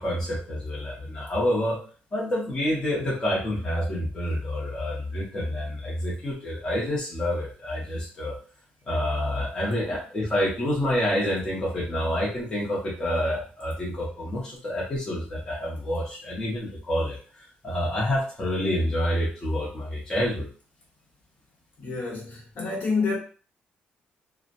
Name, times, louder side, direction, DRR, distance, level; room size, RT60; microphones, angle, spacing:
voice 1, 0.0-1.8 2.1-8.3 8.9-20.5, left 1 dB, 20° left, 0.7 m, -28 dB
voice 2, 21.8-23.2, left 4 dB, 55° left, 1.0 m, -28 dB
2.7 x 2.0 x 2.5 m
cardioid pair, 180°, 4 cm